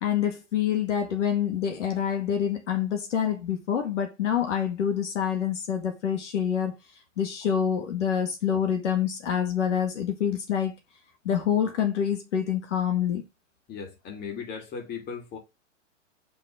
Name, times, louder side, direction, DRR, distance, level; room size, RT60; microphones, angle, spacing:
voice 1, 0.0-6.8 7.2-10.7 11.3-13.2, left 8 dB, 65° left, 1.9 m, -26 dB
voice 2, 13.7-15.4, left 6 dB, 25° left, 2.7 m, -37 dB
5.4 x 4.3 x 5.8 m
hypercardioid pair, 130°, 38 cm